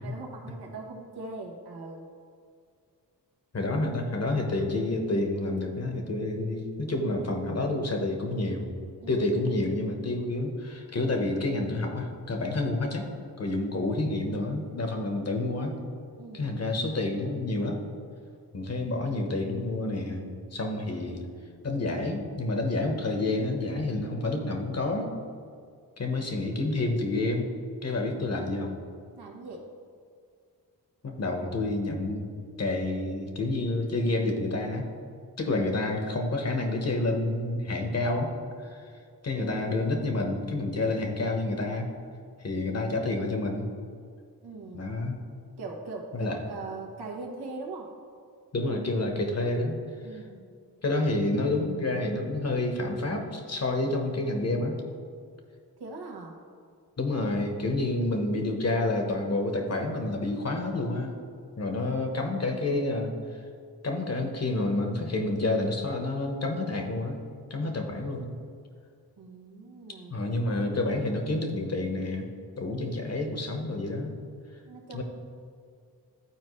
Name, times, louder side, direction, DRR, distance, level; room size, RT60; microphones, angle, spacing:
voice 1, 0.0-2.1 9.0-9.2 16.2-16.5 28.0-28.3 29.2-29.7 39.3-39.9 44.4-44.9 45.6-47.9 50.0-50.5 55.8-56.4 69.2-70.2 74.7-75.0, right 3 dB, 85° right, 0 dB, 1.2 m, -41 dB
voice 2, 3.5-8.7 9.1-13.1 13.4-15.8 16.3-17.8 18.5-21.2 21.6-25.1 26.0-27.5 27.8-28.7 31.0-32.3 32.6-34.9 35.4-38.3 38.6-38.8 39.2-41.9 42.4-43.7 44.7-45.2 46.1-46.4 48.5-49.8 50.1-50.2 50.8-54.8 57.0-61.2 61.6-63.1 63.8-67.2 67.5-68.4 70.1-72.3 72.6-74.2 74.9-75.0, left 2 dB, 40° left, 3 dB, 1.1 m, -29 dB
12.0 x 4.3 x 3.1 m, 2.2 s
cardioid pair, 65°, 38 cm